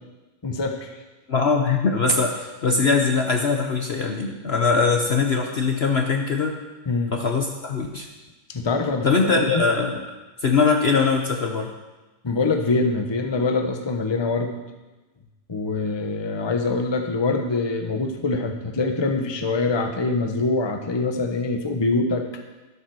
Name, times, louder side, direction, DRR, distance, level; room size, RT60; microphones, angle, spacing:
voice 1, 0.4-0.9 6.9-7.1 8.5-9.6 12.2-14.5 15.5-22.2, left 3 dB, 20° left, 4 dB, 0.8 m, -24 dB
voice 2, 1.3-6.6 7.1-8.1 9.0-10.0 10.4-11.7, left 4 dB, 45° left, 2 dB, 1.0 m, -21 dB
12.5 x 8.1 x 6.2 m, 1.1 s
omnidirectional pair, 1.7 m